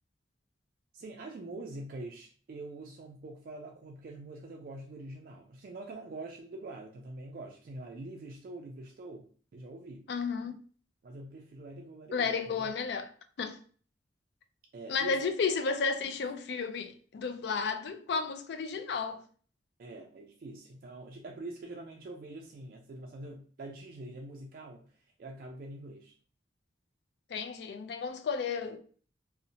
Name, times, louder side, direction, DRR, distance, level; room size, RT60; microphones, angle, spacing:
voice 1, 0.9-10.1 11.0-12.7 14.7-15.3 19.8-26.1, right 2 dB, 50° right, 0.3 m, -45 dB
voice 2, 10.1-10.6 12.1-13.1 13.4-13.6 14.9-19.2 27.3-28.8, left 5 dB, 65° left, 0.3 m, -32 dB
2.6 x 2.0 x 2.7 m
head